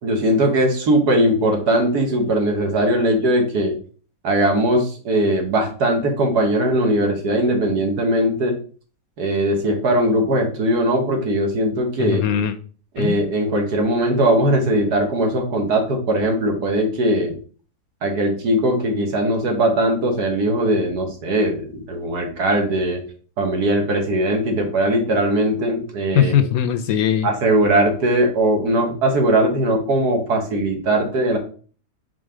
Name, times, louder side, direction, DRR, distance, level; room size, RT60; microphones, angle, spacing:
voice 1, 0.0-3.8 4.2-8.6 9.2-12.2 13.0-17.4 18.0-23.0 23.4-26.3 27.2-31.4, right 1 dB, 75° right, 3 dB, 1.9 m, -20 dB
voice 2, 12.0-12.5 13.0-13.2 26.2-27.3, left 9 dB, 70° left, 10 dB, 1.0 m, -19 dB
5.0 x 3.9 x 4.9 m, 0.41 s
omnidirectional pair, 1.7 m